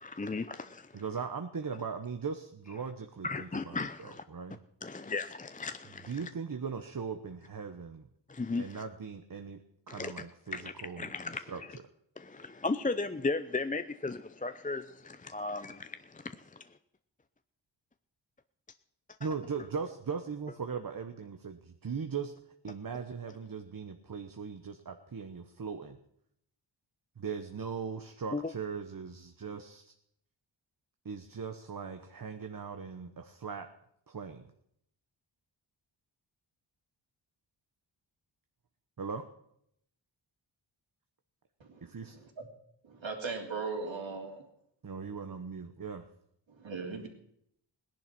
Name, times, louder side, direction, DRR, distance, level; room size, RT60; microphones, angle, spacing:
voice 1, 0.0-1.0 3.2-4.2 4.8-6.1 8.3-8.8 9.9-10.1 10.5-11.7 12.2-16.6 28.3-28.4, left 3 dB, 15° left, 0.6 m, -36 dB
voice 2, 0.9-4.6 6.1-8.1 8.6-11.1 11.5-11.6 19.2-22.3 22.6-26.0 27.2-29.9 31.0-33.7 34.1-34.5 39.0-39.3 41.8-42.2 44.8-46.1, right 6 dB, 45° right, 1.1 m, -39 dB
voice 3, 42.8-44.4 46.6-47.1, right 4 dB, 70° right, 3.3 m, -38 dB
17.5 x 10.5 x 6.1 m
wide cardioid pair, 75°, 47 cm